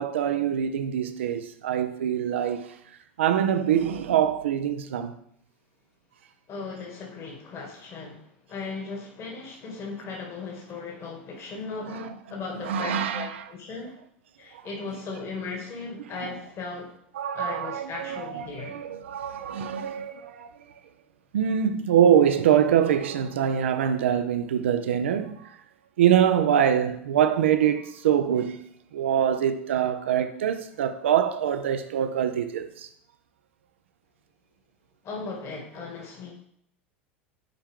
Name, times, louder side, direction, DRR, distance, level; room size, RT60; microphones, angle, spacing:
voice 1, 0.0-2.7 3.2-5.1 11.9-12.1 12.6-13.4 17.2-20.5 21.3-25.4 26.0-28.6 28.9-32.9, right 9 dB, 75° right, 0.7 m, -24 dB
voice 2, 6.5-13.9 14.4-16.9 17.3-18.8 35.0-36.3, left 4 dB, 40° left, 2.2 m, -37 dB
10.5 x 4.4 x 3.6 m
hypercardioid pair, 80°, 7 cm